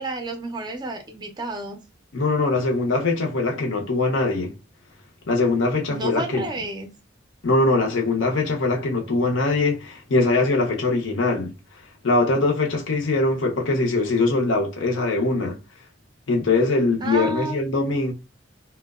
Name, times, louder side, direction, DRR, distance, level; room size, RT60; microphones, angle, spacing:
voice 1, 0.0-1.8 5.9-6.9 17.0-17.6, right 2 dB, 20° right, 0.4 m, -30 dB
voice 2, 2.1-4.5 5.3-6.5 7.4-11.5 12.0-15.6 16.3-18.1, left 3 dB, 75° left, 0.6 m, -22 dB
2.7 x 2.1 x 2.3 m
head